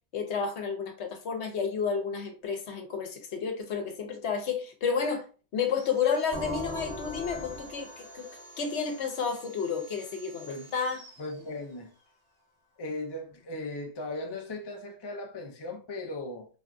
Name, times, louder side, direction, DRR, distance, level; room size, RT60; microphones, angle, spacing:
voice 1, 0.1-5.3 5.5-8.3 8.6-11.0, left 6 dB, 75° left, 1.0 m, -31 dB
Sawing, 5.6-12.1, equal, 45° right, 1.5 m, -52 dB
sound 1, 6.3-10.0, equal, 15° left, 1.0 m, -41 dB
voice 2, 11.2-11.9 12.8-16.5, left 2 dB, 35° left, 0.4 m, -37 dB
4.2 x 2.3 x 2.5 m
omnidirectional pair, 1.2 m